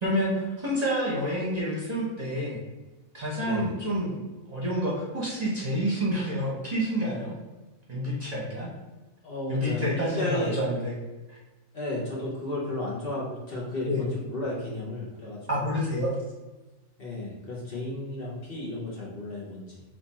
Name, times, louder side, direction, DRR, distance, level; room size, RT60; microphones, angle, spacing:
voice 1, 0.0-2.6 3.1-4.2 4.5-7.4 7.9-8.7 9.5-10.9 11.3-11.4 13.9-14.0 15.5-16.1, equal, 30° right, -5 dB, 1.0 m, -28 dB
voice 2, 3.4-3.7 9.2-10.6 11.7-15.8 17.0-19.8, left 2 dB, 45° left, -5 dB, 1.2 m, -33 dB
4.0 x 3.1 x 4.2 m, 1.2 s
omnidirectional pair, 1.5 m